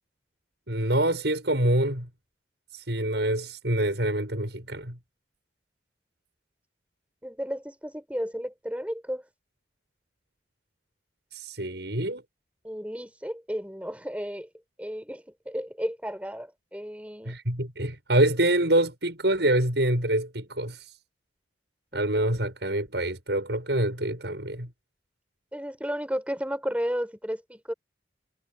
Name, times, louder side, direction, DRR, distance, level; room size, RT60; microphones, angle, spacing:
voice 1, 0.7-2.1 2.7-5.0 11.3-12.2 17.3-20.9 21.9-24.7, right 1 dB, 70° right, 7.6 m, -26 dB
voice 2, 7.2-9.2 12.6-14.5 14.8-17.3 21.9-22.0 25.5-27.7, equal, 10° right, 4.8 m, -33 dB
head